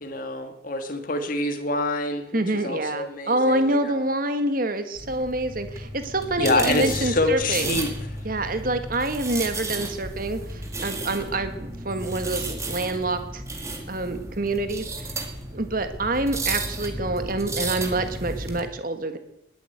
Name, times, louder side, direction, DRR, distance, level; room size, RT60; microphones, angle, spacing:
voice 1, 0.0-4.0 6.4-7.9, left 2 dB, 45° left, 6 dB, 1.8 m, -26 dB
voice 2, 2.3-7.8 8.2-13.4 13.9-15.1 15.5-19.2, right 2 dB, 45° right, 9 dB, 1.6 m, -27 dB
sound 1, 5.0-18.6, right 2 dB, 15° right, 1.9 m, -33 dB
20.0 x 8.3 x 8.0 m, 0.85 s
head